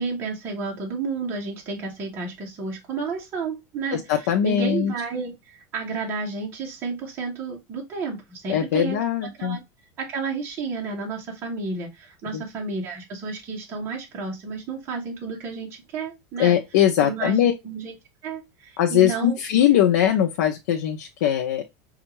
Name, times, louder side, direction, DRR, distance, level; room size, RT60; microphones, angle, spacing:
voice 1, 0.0-9.0 9.4-9.6 10.0-16.5 17.0-17.9 18.2-19.4, right 4 dB, 25° right, 0.9 m, -31 dB
voice 2, 3.9-4.9 8.5-9.6 12.3-12.4 16.4-17.5 18.8-21.6, left 10 dB, 90° left, 0.6 m, -21 dB
5.3 x 2.4 x 2.9 m
supercardioid pair, 175°, 9 cm